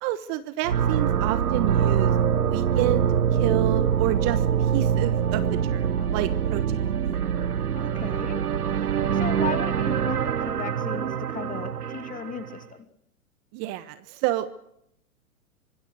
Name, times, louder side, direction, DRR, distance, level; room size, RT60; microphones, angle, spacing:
voice 1, 0.0-6.6 13.5-14.5, right 15 dB, 35° right, 14 dB, 1.3 m, -29 dB
sound 1, 0.6-12.6, right 8 dB, 90° right, 1.2 m, -24 dB
voice 2, 6.0-7.2 7.7-8.4 8.8-12.8, left 7 dB, 20° left, 10 dB, 2.6 m, -37 dB
25.0 x 20.5 x 6.5 m, 0.76 s
hypercardioid pair, 125°, 43 cm